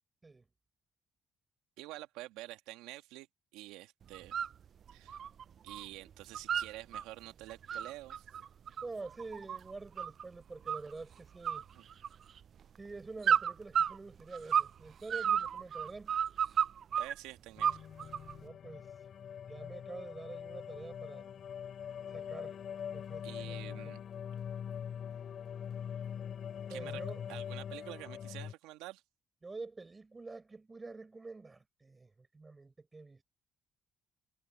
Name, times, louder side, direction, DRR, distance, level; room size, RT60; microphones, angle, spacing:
voice 1, 1.8-3.3 3.5-4.5 4.9-5.2 5.6-8.3 11.7-11.9 16.9-17.8 23.2-24.0 26.7-27.0 27.3-29.0, right 17 dB, 85° right, 1.9 m, -48 dB
sound 1, 4.1-4.5 4.9-5.8 6.1-7.0 7.5-10.2 10.7-11.1 11.4-12.4 13.2-14.8 15.1-17.1 17.6-18.3, right 8 dB, 55° right, 0.3 m, -32 dB
voice 2, 8.8-11.6 12.8-16.1 18.4-18.9 19.5-21.3 22.1-22.6 22.9-23.9 26.7-27.2 29.4-33.2, right 3 dB, 25° right, 5.7 m, -47 dB
sound 2, 17.6-28.5, left 8 dB, 60° left, 2.8 m, -43 dB
supercardioid pair, 65°, 0 cm